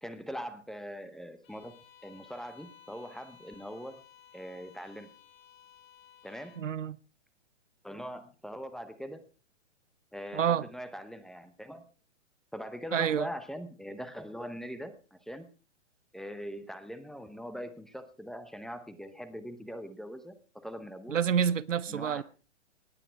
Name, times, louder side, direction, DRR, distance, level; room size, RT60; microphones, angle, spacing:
voice 1, 0.0-4.0 4.3-5.1 6.2-6.6 7.8-9.2 10.1-11.8 12.5-15.5 16.1-20.4 20.6-21.2 21.9-22.2, equal, ahead, 0.8 m, -42 dB
Bowed string instrument, 1.4-6.7, left 9 dB, 25° left, 3.2 m, -57 dB
voice 2, 6.6-7.0 10.3-10.6 12.9-13.3 21.1-22.2, right 8 dB, 85° right, 0.8 m, -28 dB
18.5 x 9.1 x 4.7 m
hypercardioid pair, 135°, 36 cm